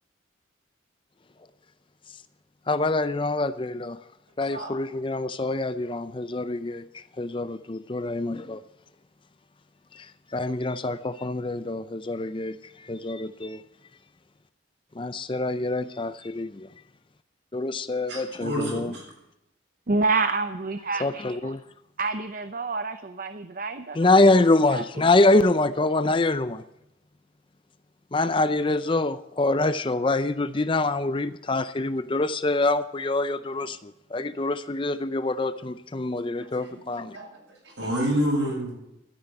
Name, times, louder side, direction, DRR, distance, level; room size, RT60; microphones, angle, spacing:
voice 1, 2.7-4.0 4.4-8.6 9.9-13.6 14.9-16.7 17.5-18.9 21.0-21.6 23.9-26.6 28.1-37.2, left 2 dB, 25° left, 13 dB, 0.5 m, -25 dB
voice 2, 18.1-19.0 37.1-37.2 37.8-38.7, equal, 65° right, -2 dB, 7.6 m, -27 dB
voice 3, 19.9-21.5 22.0-24.1 24.7-24.8, right 3 dB, 45° right, 10 dB, 0.6 m, -28 dB
13.0 x 10.0 x 9.1 m, 0.86 s
head